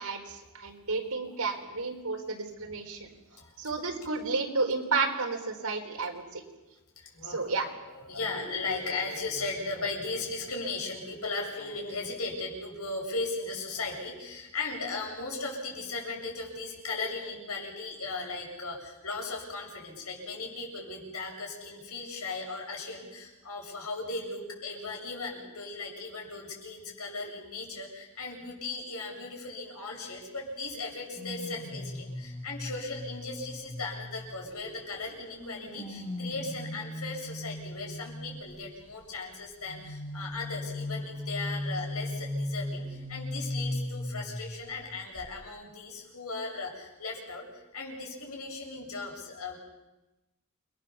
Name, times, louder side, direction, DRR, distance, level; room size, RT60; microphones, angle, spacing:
voice 1, 0.0-3.1 3.6-6.4 7.3-7.7, right 4 dB, 85° right, 3 dB, 4.5 m, -31 dB
voice 2, 3.3-3.7 7.0-7.5 7.8-49.6, left 3 dB, 80° left, 0 dB, 7.8 m, -37 dB
sound 1, 31.1-34.7 35.4-38.6 39.6-44.9 45.1-45.4, left 1 dB, 25° left, 3.5 m, -37 dB
29.5 x 22.5 x 7.2 m, 1.0 s
head